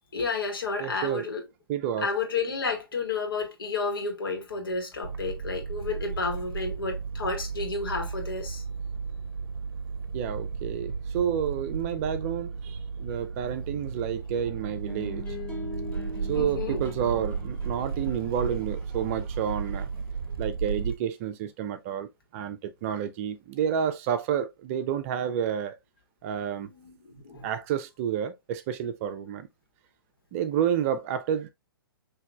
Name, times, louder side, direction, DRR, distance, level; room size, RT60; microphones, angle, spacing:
voice 1, 0.1-1.4 2.0-8.6 16.3-16.8 26.7-27.5, left 4 dB, 70° left, 1.6 m, -31 dB
voice 2, 0.8-1.3 1.7-2.1 10.1-15.2 16.3-19.9 20.4-25.8 26.2-26.7 27.4-29.5 30.3-31.5, right 9 dB, 35° right, 0.5 m, -30 dB
sound 1, 5.0-20.9, right 5 dB, 80° right, 0.6 m, -34 dB
sound 2, 14.9-20.5, left 3 dB, 15° left, 1.7 m, -42 dB
5.9 x 2.8 x 2.3 m
figure-of-eight pair, 120°, 12 cm